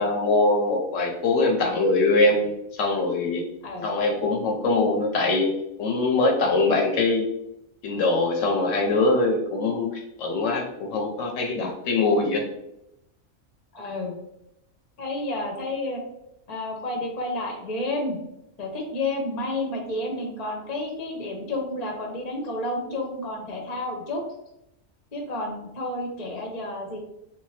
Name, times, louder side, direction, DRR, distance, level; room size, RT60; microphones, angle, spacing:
voice 1, 0.0-2.5 2.8-3.4 3.8-5.5 5.8-7.3 7.8-12.4, left 2 dB, 70° left, 1 dB, 1.0 m, -22 dB
voice 2, 13.7-14.2 15.0-16.0 16.5-18.2 18.6-24.2 25.1-27.0, left 2 dB, 35° left, 1 dB, 0.7 m, -30 dB
3.5 x 2.7 x 3.2 m, 0.85 s
omnidirectional pair, 1.4 m